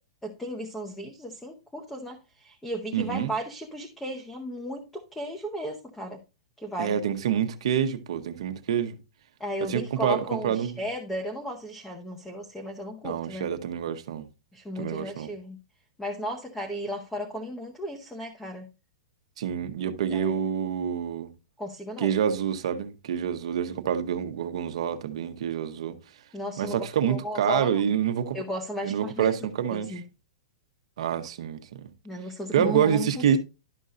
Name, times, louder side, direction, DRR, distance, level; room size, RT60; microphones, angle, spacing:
voice 1, 0.2-6.2 6.6-6.9 9.4-13.5 14.5-15.6 16.0-18.7 20.1-20.5 21.6-22.1 26.3-27.9 28.3-29.4 29.7-30.0 32.0-33.4, equal, 5° left, 0.9 m, -35 dB
voice 2, 2.9-3.3 6.8-9.0 9.7-10.8 13.0-14.3 14.8-15.3 19.4-21.3 22.0-26.0 26.6-28.4 28.8-30.0 31.0-31.9 32.5-33.4, right 8 dB, 65° right, 1.0 m, -27 dB
12.0 x 5.4 x 2.5 m
hypercardioid pair, 160°, 3 cm